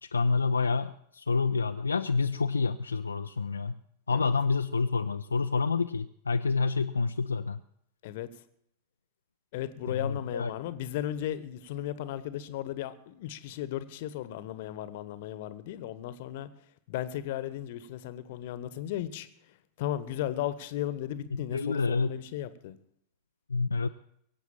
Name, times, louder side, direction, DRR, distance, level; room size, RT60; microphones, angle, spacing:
voice 1, 0.0-3.8 4.1-7.6 9.8-10.5 21.3-22.1 23.5-23.9, left 4 dB, 75° left, 7 dB, 0.5 m, -28 dB
voice 2, 9.5-16.5 16.9-22.8, left 12 dB, 50° left, 14 dB, 1.1 m, -35 dB
22.5 x 8.1 x 7.4 m, 0.73 s
figure-of-eight pair, 90°, 0 cm